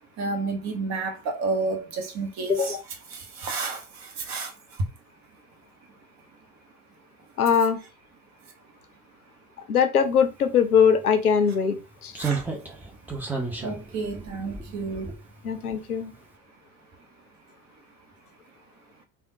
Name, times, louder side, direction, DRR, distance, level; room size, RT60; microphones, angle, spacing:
voice 1, 0.2-2.8 3.1-4.8 8.4-8.5 12.2-12.5 12.9-15.2, right 3 dB, 40° right, 1.0 m, -31 dB
voice 2, 2.5-2.8 7.4-7.8 9.7-12.1 15.4-16.1, left 7 dB, 85° left, 0.6 m, -21 dB
Slam, 10.8-10.9 12.1-15.7 16.0-16.1, right 4 dB, 5° right, 0.5 m, -33 dB
3.4 x 2.2 x 2.7 m
figure-of-eight pair, 75°, 43 cm